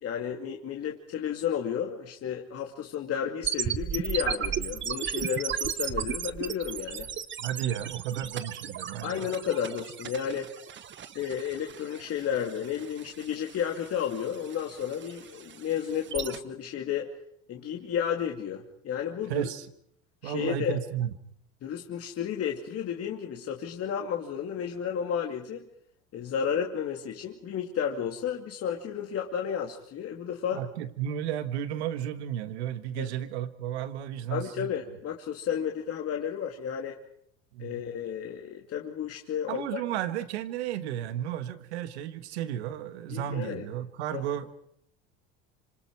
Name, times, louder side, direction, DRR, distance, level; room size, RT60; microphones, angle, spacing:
voice 1, 0.0-7.1 9.0-10.5 11.1-17.1 17.5-19.5 20.2-20.8 21.6-25.6 26.1-30.6 33.0-33.1 34.3-37.0 37.6-39.8 43.1-43.6 44.1-44.2, left 8 dB, 45° left, 1 dB, 2.5 m, -32 dB
sound 1, 3.4-16.4, right 9 dB, 35° right, 1.3 m, -35 dB
voice 2, 7.4-9.3 19.3-19.7 20.2-21.1 30.5-34.7 37.5-37.9 39.5-44.5, right 11 dB, 85° right, 11 dB, 1.7 m, -33 dB
26.5 x 26.5 x 4.8 m, 0.69 s
supercardioid pair, 100°, 33 cm